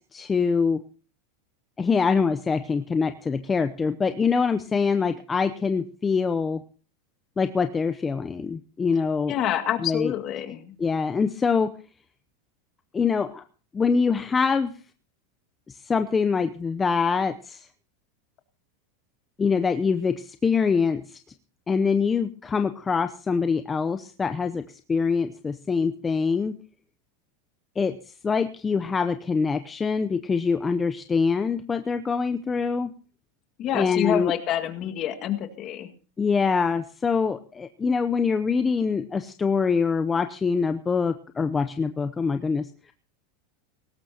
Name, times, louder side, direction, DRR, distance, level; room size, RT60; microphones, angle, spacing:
voice 1, 0.1-0.8 1.8-6.6 7.4-9.3 9.8-10.1 10.8-11.7 12.9-13.4 13.7-14.7 15.7-17.7 19.4-21.2 21.7-26.6 27.8-28.0 28.2-32.9 33.7-34.3 36.2-42.9, left 5 dB, 15° left, 9 dB, 0.7 m, -24 dB
voice 2, 9.3-10.8 33.6-35.9, left 11 dB, 40° left, 6 dB, 1.9 m, -27 dB
18.5 x 16.5 x 2.9 m, 0.37 s
supercardioid pair, 135°, 0 cm